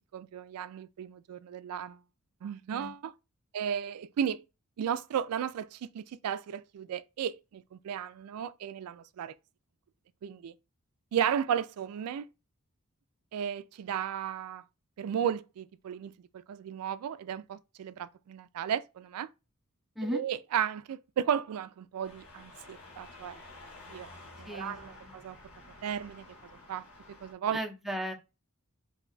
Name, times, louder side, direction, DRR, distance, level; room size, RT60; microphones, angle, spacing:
voice 1, 0.1-2.0 2.4-3.1 3.5-4.4 4.8-9.3 10.2-10.5 11.1-12.3 13.3-14.6 15.0-19.3 20.1-23.4 23.9-24.1 24.4-25.4 25.8-26.3 26.7-27.6, right 8 dB, 75° right, 0.3 m, -34 dB
sound 1, 22.0-27.3, left 2 dB, 70° left, 1.1 m, -51 dB
voice 2, 24.4-24.8 25.0-25.1 27.5-28.1, right 1 dB, ahead, 0.5 m, -35 dB
2.7 x 2.2 x 3.9 m
head